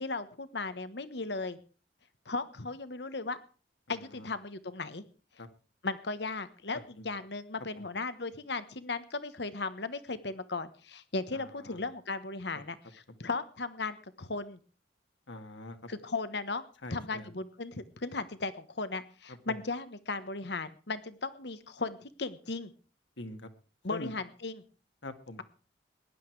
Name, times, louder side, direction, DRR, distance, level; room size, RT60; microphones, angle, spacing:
voice 1, 0.0-1.6 2.2-3.4 3.9-5.0 5.8-14.6 15.9-16.6 16.9-22.7 23.8-24.6, left 3 dB, 65° left, 13 dB, 1.3 m, -36 dB
voice 2, 3.9-4.3 5.4-5.5 7.0-7.1 7.8-7.9 11.3-11.8 15.3-15.8 16.8-17.3 19.3-19.6 23.2-23.5 23.9-24.1 25.0-25.4, left 2 dB, 90° left, 7 dB, 2.1 m, -44 dB
18.5 x 11.0 x 4.7 m, 0.38 s
head